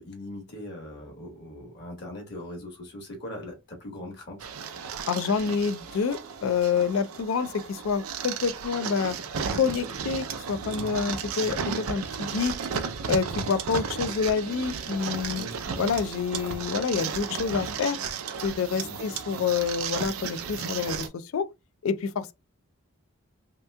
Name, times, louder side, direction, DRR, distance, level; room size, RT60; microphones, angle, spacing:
voice 1, 0.0-4.5 15.2-15.5 18.8-19.0, left 1 dB, 50° left, 1.1 m, -40 dB
sound 1, 4.4-21.1, right 6 dB, 80° right, 0.5 m, -34 dB
voice 2, 5.1-9.2 9.5-12.5 13.1-15.4 15.8-18.0 18.4-21.5 21.8-22.3, left 6 dB, 65° left, 0.4 m, -27 dB
3.3 x 2.8 x 2.2 m
head